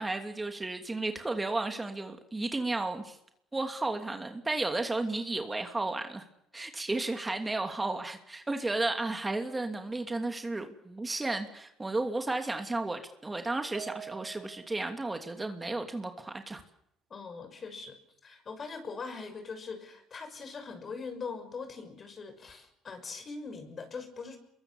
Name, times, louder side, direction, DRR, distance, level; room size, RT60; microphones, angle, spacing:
voice 1, 0.0-3.2 3.5-6.2 6.5-16.6, right 2 dB, 20° right, 5 dB, 2.8 m, -33 dB
sound 1, 13.7-14.9, right 8 dB, 50° right, 3.8 m, -45 dB
voice 2, 17.1-24.4, left 4 dB, 40° left, 8 dB, 6.3 m, -42 dB
27.5 x 22.5 x 7.3 m, 0.80 s
hypercardioid pair, 65°, 0 cm